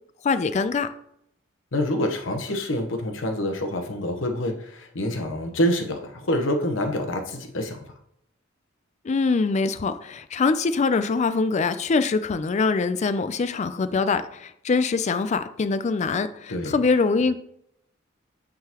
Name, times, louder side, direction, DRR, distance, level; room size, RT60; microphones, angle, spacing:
voice 1, 0.2-0.9 9.0-17.4, left 4 dB, 35° left, 12 dB, 0.4 m, -23 dB
voice 2, 1.7-7.8 16.5-16.7, left 1 dB, 75° left, 4 dB, 1.0 m, -26 dB
8.5 x 3.8 x 2.9 m, 0.71 s
head